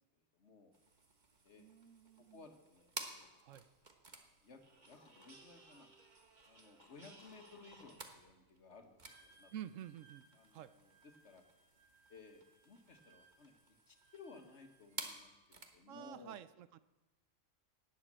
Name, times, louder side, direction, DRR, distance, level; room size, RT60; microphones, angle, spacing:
voice 1, 0.1-0.7 1.4-1.9 2.2-3.3 3.6-3.7 4.4-5.9 6.5-9.5 10.3-11.4 12.1-16.4, left 4 dB, 60° left, 5 dB, 1.7 m, -59 dB
sound 1, 0.7-15.8, right 3 dB, 35° right, 1.4 m, -54 dB
voice 2, 1.6-2.4 3.4-3.7 9.5-10.2 10.5-10.7 15.9-16.8, right 11 dB, 70° right, 15 dB, 1.0 m, -50 dB
sound 2, 2.7-4.5 4.9-5.6 6.2-8.4 8.7-9.1, left 2 dB, 35° left, 1.5 m, -67 dB
Wind instrument woodwind instrument, 9.0-15.0, right 3 dB, 10° left, 3.2 m, -69 dB
19.0 x 7.5 x 7.5 m, 1.1 s
omnidirectional pair, 1.4 m